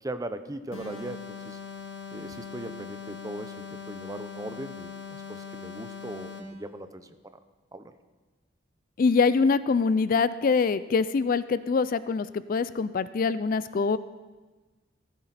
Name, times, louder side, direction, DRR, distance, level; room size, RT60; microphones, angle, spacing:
voice 1, 0.0-1.6 2.1-7.1 7.7-7.9, right 1 dB, 20° right, 9 dB, 0.7 m, -39 dB
sound 1, 0.7-6.6, left 5 dB, 75° left, 2.4 m, -41 dB
voice 2, 9.0-14.0, left 4 dB, 45° left, 16 dB, 0.3 m, -24 dB
15.5 x 13.5 x 4.2 m, 1.3 s
head